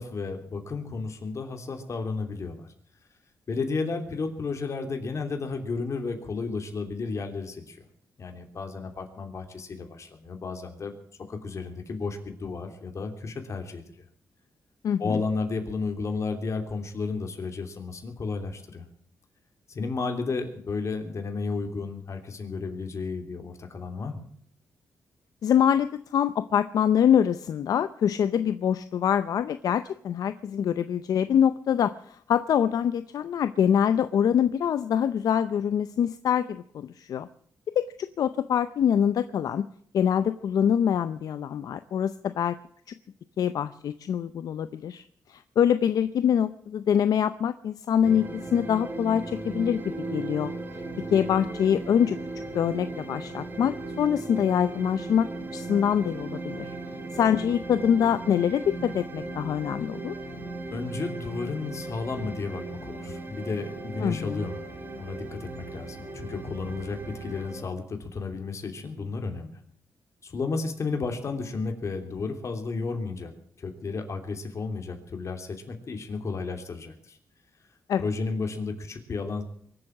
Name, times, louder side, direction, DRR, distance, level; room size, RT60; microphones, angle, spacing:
voice 1, 0.0-2.7 3.5-7.8 8.2-10.9 11.3-13.8 15.0-18.8 19.7-24.3 60.7-64.7 65.0-69.6 70.2-73.3 73.6-77.2 78.0-79.4, left 4 dB, 50° left, 5 dB, 3.0 m, -33 dB
voice 2, 14.8-15.2 25.4-37.3 37.8-39.6 39.9-42.6 43.4-45.0 45.3-49.8 50.1-50.5 51.1-52.2 52.5-55.3 55.5-56.7 57.1-60.1 64.0-64.5 77.9-78.1, left 8 dB, 75° left, 12 dB, 0.6 m, -24 dB
sound 1, 48.0-67.6, right 2 dB, 35° right, 4.2 m, -37 dB
23.5 x 7.8 x 7.3 m, 0.63 s
cardioid pair, 90°, 6 cm